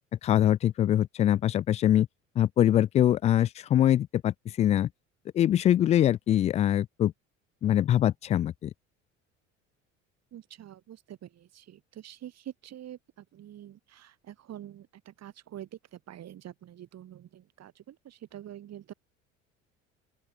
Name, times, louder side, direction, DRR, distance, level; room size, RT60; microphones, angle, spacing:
voice 1, 0.2-2.1 2.4-4.9 5.3-7.1 7.6-8.7, left 11 dB, 20° left, 0.3 m, -23 dB
voice 2, 10.3-18.9, right 11 dB, 40° right, 4.3 m, -46 dB
open air
figure-of-eight pair, 60°, 38 cm